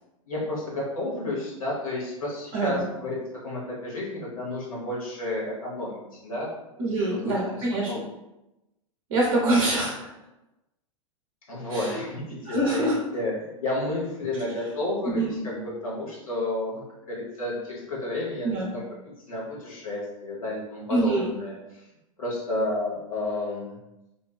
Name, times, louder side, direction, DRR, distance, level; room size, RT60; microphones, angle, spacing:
voice 1, 0.3-6.5 7.2-7.4 7.9-8.0 11.5-18.8 19.3-21.5 22.2-23.8, left 1 dB, 80° left, -5 dB, 0.8 m, -31 dB
voice 2, 2.5-2.8 6.8-7.9 9.1-9.9 11.7-12.0 12.4-13.0 15.1-15.4 18.4-18.7 20.9-21.3, right 2 dB, 55° right, -4 dB, 0.6 m, -25 dB
2.5 x 2.2 x 2.3 m, 0.94 s
figure-of-eight pair, 95°, 18 cm